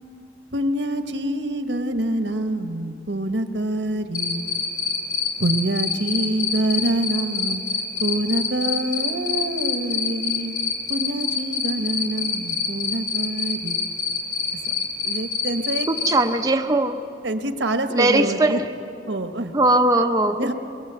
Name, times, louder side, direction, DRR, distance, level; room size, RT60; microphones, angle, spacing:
voice 1, 0.5-4.5 5.4-7.6 8.0-13.8 15.0-15.9 17.2-18.6 19.1-19.5 20.4-20.5, right 1 dB, 75° right, 8 dB, 1.4 m, -26 dB
Cricket, 4.1-16.1, left 6 dB, 50° left, 3.4 m, -25 dB
voice 2, 15.9-17.0 17.9-18.6 19.5-20.5, right 2 dB, 20° right, 4 dB, 0.7 m, -19 dB
23.5 x 22.5 x 8.2 m, 2.8 s
head